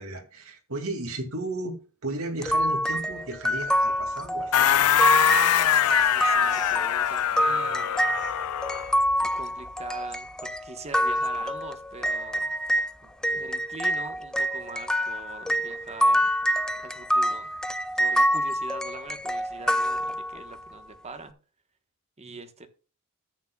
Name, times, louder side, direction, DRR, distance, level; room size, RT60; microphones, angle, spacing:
voice 1, 0.0-4.9 13.3-13.4 22.2-22.3, right 2 dB, 65° right, 2.3 m, -35 dB
sound 1, 2.4-12.9 13.2-20.6, equal, 5° left, 0.5 m, -26 dB
Human voice / Acoustic guitar, 3.4-11.4, left 2 dB, 20° left, 4.3 m, -52 dB
sound 2, 4.5-8.9, left 10 dB, 80° left, 0.4 m, -23 dB
voice 2, 5.6-8.7 9.2-12.5 13.3-16.3 16.8-17.5 17.9-21.3 22.2-22.7, right 3 dB, 30° right, 1.2 m, -43 dB
13.5 x 8.3 x 2.3 m
head